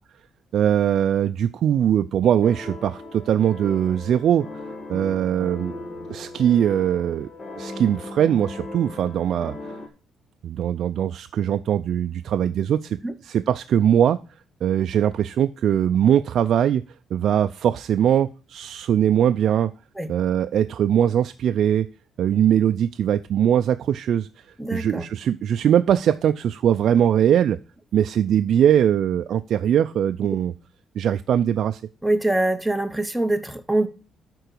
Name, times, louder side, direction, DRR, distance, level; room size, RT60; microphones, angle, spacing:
voice 1, 0.5-4.5 4.9-5.7 6.1-7.3 7.6-9.5 10.4-13.0 13.2-14.2 14.6-16.8 17.1-19.7 20.1-21.9 22.2-24.3 24.7-27.6 27.9-30.5 31.0-31.8, right 9 dB, 60° right, 0.3 m, -21 dB
sound 1, 2.4-9.9, left 2 dB, 30° left, 1.3 m, -38 dB
voice 2, 24.6-25.0 32.0-33.9, right 1 dB, 5° right, 0.7 m, -23 dB
9.2 x 3.9 x 6.6 m
cardioid pair, 140°, 0 cm